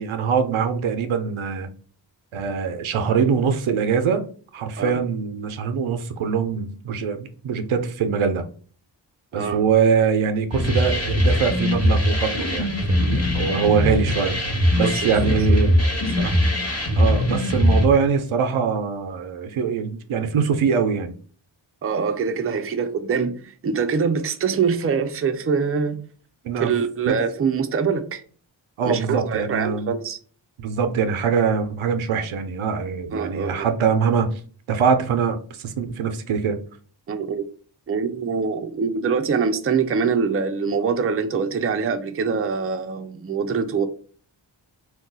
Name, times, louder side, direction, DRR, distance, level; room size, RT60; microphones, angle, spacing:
voice 1, 0.0-1.7 2.3-4.2 4.5-8.4 9.3-14.4 14.8-15.7 17.0-21.1 26.4-26.7 28.8-29.9 30.6-34.4 34.7-36.6, right 6 dB, 90° right, 0.5 m, -23 dB
sound 1, 10.5-17.9, left 1 dB, 30° left, 1.2 m, -21 dB
voice 2, 14.8-15.6 16.2-16.4 21.8-26.0 26.6-28.2 28.8-30.2 33.1-33.7 37.1-37.4 37.9-43.9, right 5 dB, 30° right, 0.4 m, -24 dB
2.3 x 2.2 x 3.8 m
cardioid pair, 45°, 47 cm